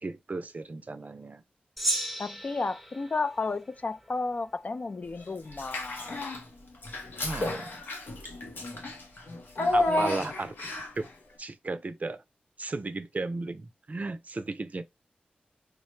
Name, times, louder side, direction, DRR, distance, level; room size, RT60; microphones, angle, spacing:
voice 1, 0.0-1.4 7.2-7.8 9.7-11.1 11.4-12.2 12.6-14.8, right 3 dB, 50° right, 0.4 m, -35 dB
Gong, 1.8-4.4, right 1 dB, 5° left, 0.8 m, -35 dB
voice 2, 2.2-6.3 9.9-10.3, left 3 dB, 50° left, 0.3 m, -33 dB
Child speech kid speaking / Bathtub (filling or washing), 5.5-6.4 6.8-11.1, left 2 dB, 85° left, 0.8 m, -31 dB
4.8 x 2.1 x 3.1 m
cardioid pair, 45°, 3 cm